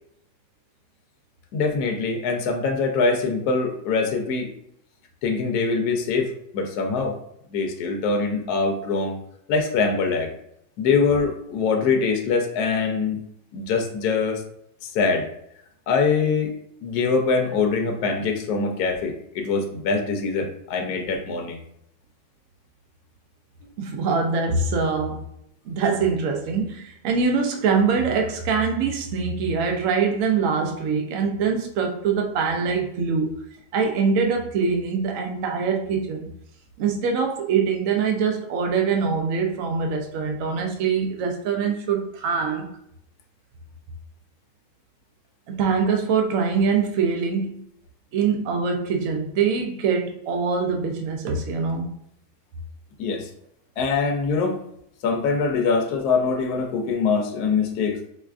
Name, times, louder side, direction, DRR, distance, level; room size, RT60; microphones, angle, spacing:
voice 1, 1.5-4.5 5.2-7.2 7.5-9.2 9.5-10.3 10.8-13.2 13.5-14.4 14.8-15.3 15.9-16.5 16.8-21.6 53.0-53.3 53.8-54.6 55.0-58.0, left 4 dB, 70° left, 3 dB, 1.1 m, -23 dB
voice 2, 23.8-25.2 25.7-33.4 33.7-36.3 36.8-42.7 45.5-47.6 48.1-51.9, right 5 dB, 75° right, 2 dB, 0.7 m, -23 dB
4.8 x 2.3 x 2.3 m, 0.73 s
omnidirectional pair, 1.9 m